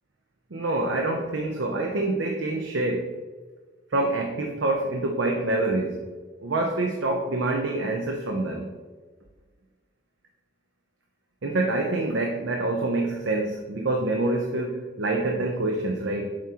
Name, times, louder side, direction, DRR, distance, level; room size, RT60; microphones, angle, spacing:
voice 1, 0.5-3.1 3.9-6.0 6.4-8.7 11.4-16.2, right 2 dB, 70° right, 2 dB, 0.7 m, -26 dB
7.3 x 4.8 x 2.9 m, 1.4 s
head